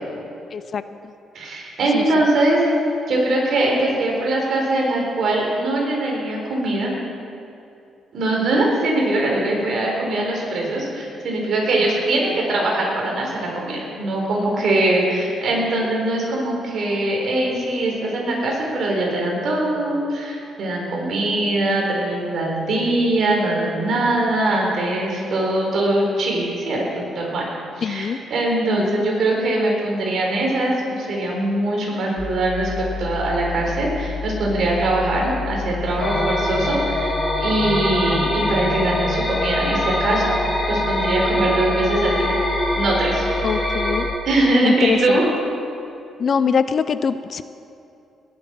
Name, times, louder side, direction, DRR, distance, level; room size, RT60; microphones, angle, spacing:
voice 1, 0.5-0.8 1.9-2.3 14.0-14.1 27.8-28.2 28.7-29.0 43.4-44.1 44.6-45.2 46.2-47.4, left 6 dB, 50° left, 13 dB, 0.5 m, -23 dB
voice 2, 1.3-2.7 3.1-6.9 8.1-40.2 40.7-42.3 42.7-43.2 44.3-45.2, right 2 dB, 60° right, -2 dB, 4.2 m, -22 dB
sound 1, 32.2-44.2, left 5 dB, 5° left, 1.8 m, -30 dB
sound 2, 36.0-44.1, equal, 20° left, 2.9 m, -24 dB
18.5 x 8.1 x 6.0 m, 2.6 s
cardioid pair, 90°, 0 cm